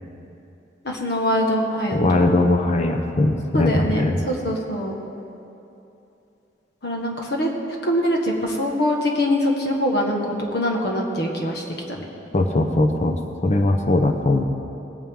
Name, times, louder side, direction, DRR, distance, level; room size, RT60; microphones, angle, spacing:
voice 1, 0.8-2.3 3.5-4.9 6.8-7.5 7.8-11.6 11.9-12.0, equal, 60° left, 0 dB, 1.5 m, -23 dB
voice 2, 1.9-4.2 12.3-14.4, left 2 dB, 40° left, 4 dB, 0.7 m, -20 dB
19.5 x 8.9 x 3.7 m, 2.8 s
head